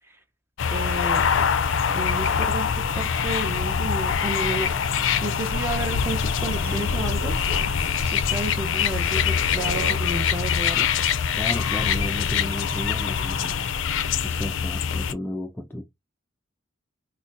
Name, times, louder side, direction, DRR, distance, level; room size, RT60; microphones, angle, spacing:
sound 1, 0.6-15.1, left 7 dB, 85° left, 0.4 m, -24 dB
voice 1, 0.7-1.5 1.9-2.7 2.9-4.7 5.2-7.3 8.1-10.9, right 2 dB, 10° right, 0.7 m, -31 dB
Crow, 3.7-10.3, right 2 dB, 75° right, 0.9 m, -40 dB
voice 2, 11.4-13.7 14.2-15.8, left 1 dB, 10° left, 0.3 m, -33 dB
3.9 x 2.2 x 2.5 m
head